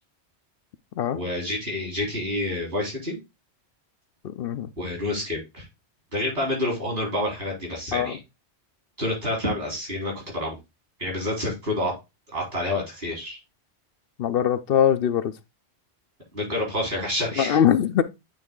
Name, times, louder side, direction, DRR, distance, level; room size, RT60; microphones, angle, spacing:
voice 1, 1.1-3.2 4.8-5.6 6.1-8.2 9.0-10.6 11.0-11.9 12.3-13.4 16.3-17.6, left 1 dB, 60° right, 3.9 m, -28 dB
voice 2, 4.2-4.7 7.9-8.1 14.2-15.3 17.4-18.0, left 9 dB, 65° left, 0.7 m, -22 dB
8.7 x 3.6 x 3.6 m
omnidirectional pair, 1.1 m